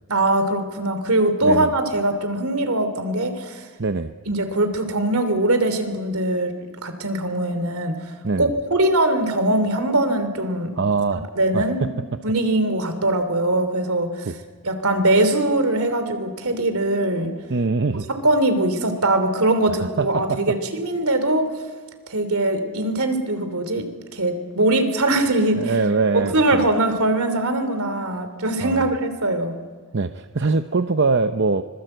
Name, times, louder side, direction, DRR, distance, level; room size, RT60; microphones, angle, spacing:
voice 1, 0.1-3.6 4.3-6.5 6.8-8.1 8.4-10.7 11.4-11.8 12.2-14.3 14.6-17.3 18.1-21.5 22.1-23.9 24.1-25.7 26.1-29.6, right 1 dB, 75° right, 9 dB, 3.1 m, -21 dB
voice 2, 3.8-4.1 8.2-8.5 10.8-11.3 11.5-11.9 14.2-14.4 17.5-18.1 19.7-20.6 25.6-26.7 28.6-28.9 29.9-31.6, right 4 dB, 50° right, 9 dB, 0.7 m, -23 dB
25.0 x 21.5 x 7.9 m, 1.5 s
head